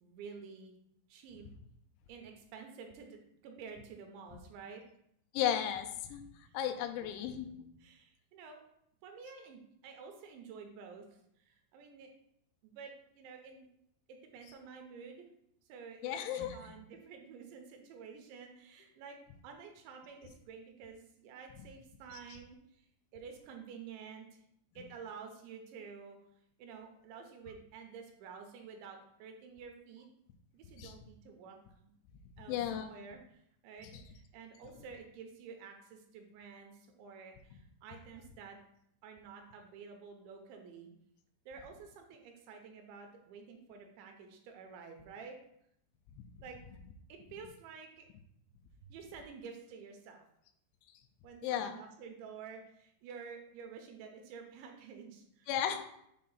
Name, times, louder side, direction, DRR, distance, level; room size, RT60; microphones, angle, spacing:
voice 1, 0.0-0.7 1.1-1.4 2.1-3.2 3.4-4.8 6.4-7.4 7.8-8.6 9.0-11.1 11.4-12.1 12.6-13.7 14.1-15.3 15.7-19.2 19.4-22.9 23.1-24.5 24.8-26.2 26.6-30.1 30.5-31.6 31.8-31.9 32.4-38.6 39.0-40.9 41.5-45.4 46.4-46.6 47.1-48.1 48.8-50.3 51.2-55.5, right 6 dB, 80° right, 3 dB, 3.1 m, -50 dB
voice 2, 5.3-6.2 6.5-7.5 16.0-16.7 30.8-30.9 32.5-32.9 46.2-46.3 51.4-51.8 55.5-55.8, left 10 dB, 85° left, 6 dB, 2.9 m, -34 dB
7.5 x 2.5 x 5.5 m, 0.74 s
omnidirectional pair, 5.2 m